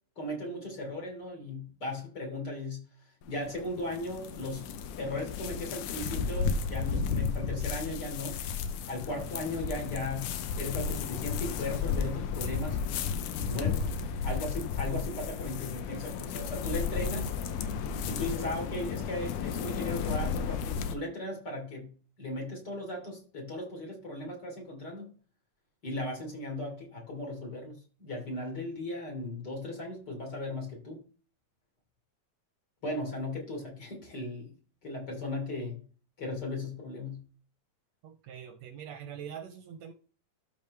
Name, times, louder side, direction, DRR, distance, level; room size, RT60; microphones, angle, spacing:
voice 1, 0.2-2.8 3.3-4.7 5.0-8.4 8.9-12.8 13.5-13.9 14.2-17.3 18.1-21.9 22.2-25.1 25.8-31.0 32.8-34.5 34.8-35.8 36.2-37.2, left 2 dB, 35° left, 0 dB, 3.6 m, -37 dB
sound 1, 3.2-20.9, left 6 dB, 85° left, 2.2 m, -33 dB
voice 2, 38.0-39.9, right 8 dB, 75° right, 8 dB, 1.8 m, -43 dB
13.0 x 5.1 x 3.2 m, 0.37 s
omnidirectional pair, 3.4 m